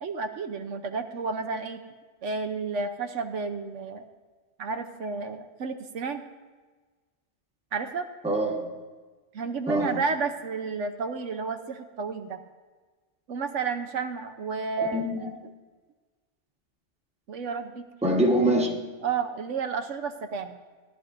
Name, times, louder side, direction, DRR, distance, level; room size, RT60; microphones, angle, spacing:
voice 1, 0.0-1.8 2.2-4.0 4.6-6.2 7.7-8.0 9.3-12.4 13.3-15.4 17.3-17.9 19.0-20.6, right 4 dB, 80° right, 6 dB, 1.1 m, -31 dB
voice 2, 8.2-8.8 9.7-10.0 14.8-15.3 18.0-18.8, right 1 dB, 5° right, 0 dB, 1.0 m, -25 dB
17.0 x 11.5 x 2.6 m, 1.4 s
omnidirectional pair, 1.3 m